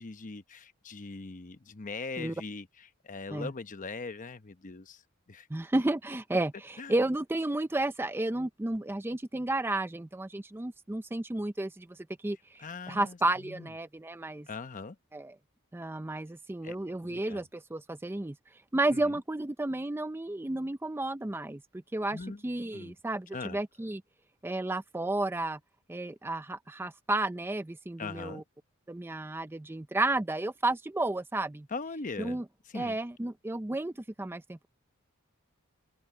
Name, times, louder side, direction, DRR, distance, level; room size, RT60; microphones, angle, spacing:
voice 1, 0.0-5.0 5.3-5.5 6.8-6.9 12.6-13.7 14.5-15.0 16.6-16.8 17.0-17.4 18.9-19.2 22.1-22.4 22.7-22.9 23.3-23.6 28.0-28.4 31.7-32.4 32.7-33.0, left 4 dB, 35° left, 0.9 m, -41 dB
voice 2, 5.5-12.0 12.2-14.5 15.1-15.3 15.7-18.4 18.7-21.6 21.9-24.0 24.4-25.6 25.9-28.4 28.9-31.7 32.2-32.4 32.7-33.9 34.2-34.7, right 2 dB, 10° right, 0.4 m, -32 dB
open air
head